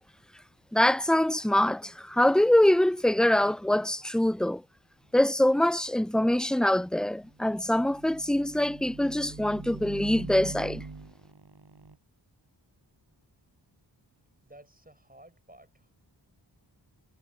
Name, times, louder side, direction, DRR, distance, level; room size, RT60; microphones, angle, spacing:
voice 1, 0.7-4.6 5.1-10.8, left 1 dB, ahead, 0.4 m, -24 dB
sound 1, 7.2-12.0, right 3 dB, 60° right, 6.2 m, -43 dB
voice 2, 14.4-15.9, right 1 dB, 20° right, 6.1 m, -54 dB
wide cardioid pair, 65°, 44 cm